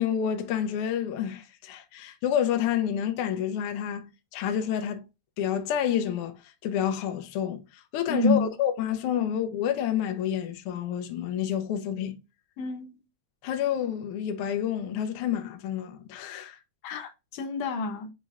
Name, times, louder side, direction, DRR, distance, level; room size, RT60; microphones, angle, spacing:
voice 1, 0.0-5.0 5.4-12.2 13.4-16.6, left 9 dB, 90° left, 1.2 m, -29 dB
voice 2, 8.1-8.5 12.6-13.0 16.8-18.1, left 2 dB, 75° left, 1.9 m, -28 dB
7.0 x 3.1 x 2.3 m
omnidirectional pair, 3.3 m